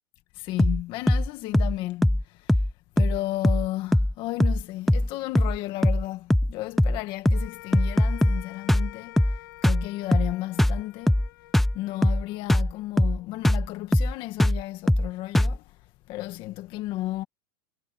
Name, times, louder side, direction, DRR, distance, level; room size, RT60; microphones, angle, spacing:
voice 1, 0.3-2.7 2.9-11.2 11.7-15.8 16.1-17.2, left 16 dB, 45° left, 1.8 m, -34 dB
sound 1, 0.6-0.8 1.1-1.3 1.5-1.8 2.0-2.2 2.5-2.7 3.0-3.2 3.4-3.7 3.9-4.1 4.4-4.6 4.9-5.1 5.3-5.6 5.8-6.0 6.3-6.5 6.8-7.0 7.2-7.5 7.7-8.4 8.7-8.9 9.2-9.4 9.6-9.8 10.1-10.3 10.6-10.8 11.1-11.3 11.5-11.8 12.0-12.2 12.5-12.7 13.0-13.2 13.4-13.7 13.9-14.1 14.4-14.6 14.9-15.1 15.3-15.6, left 1 dB, ahead, 0.4 m, -21 dB
sound 2, 7.3-13.7, left 16 dB, 75° left, 2.8 m, -48 dB
supercardioid pair, 150°, 12 cm